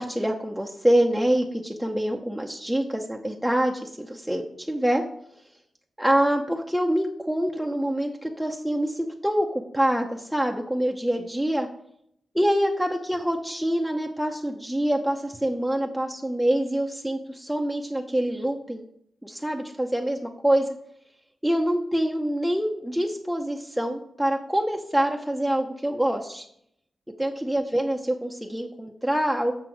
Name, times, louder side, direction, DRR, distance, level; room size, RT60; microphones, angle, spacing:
voice 1, 0.0-5.0 6.0-9.5 9.7-11.7 12.3-18.8 19.2-20.7 21.4-26.4 27.2-29.5, right 1 dB, ahead, 1 dB, 0.7 m, -25 dB
6.8 x 6.0 x 4.6 m, 0.71 s
cardioid pair, 85°, 0 cm